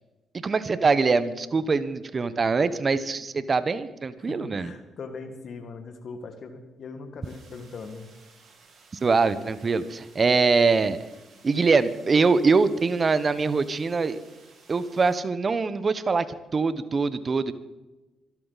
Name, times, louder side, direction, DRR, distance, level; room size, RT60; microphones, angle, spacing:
voice 1, 0.4-4.7 9.0-11.0 11.4-14.2 14.7-16.3 16.5-17.5, right 4 dB, 40° right, 14 dB, 1.1 m, -23 dB
voice 2, 4.2-8.1, left 4 dB, 60° left, 8 dB, 2.0 m, -40 dB
sound 1, 7.2-15.2, right 4 dB, 65° right, 6.6 m, -56 dB
25.0 x 13.0 x 4.2 m, 1.1 s
hypercardioid pair, 50°, 0 cm